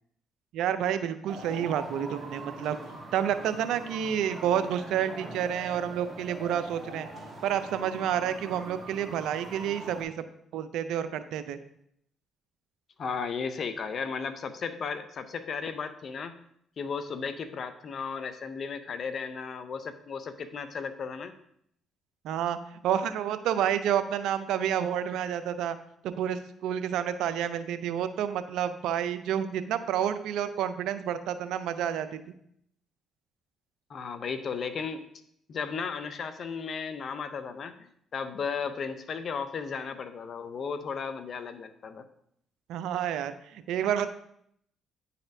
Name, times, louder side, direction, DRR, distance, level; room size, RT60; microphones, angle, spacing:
voice 1, 0.5-2.8 3.1-7.1 7.4-10.1 10.5-11.6 22.2-22.6 22.8-25.8 26.0-32.2 42.7-44.1, right 9 dB, 80° right, 12 dB, 0.4 m, -29 dB
sound 1, 1.3-10.0, right 2 dB, 25° right, 1.6 m, -42 dB
voice 2, 13.0-16.4 16.8-21.3 33.9-35.0 35.5-42.0, left 5 dB, 55° left, 11 dB, 0.6 m, -35 dB
9.6 x 4.1 x 2.6 m, 0.72 s
supercardioid pair, 65°, 0 cm